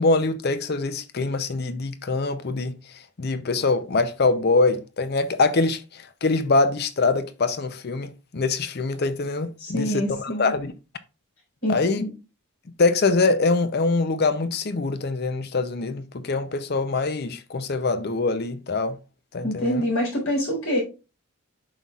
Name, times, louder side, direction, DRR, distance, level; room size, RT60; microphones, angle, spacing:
voice 1, 0.0-10.7 11.7-12.0 12.8-19.0 19.3-19.8, left 3 dB, 50° left, 0.6 m, -24 dB
voice 2, 9.6-10.5 11.6-12.1 19.4-20.8, equal, 85° left, 4.2 m, -26 dB
9.1 x 5.9 x 2.4 m
head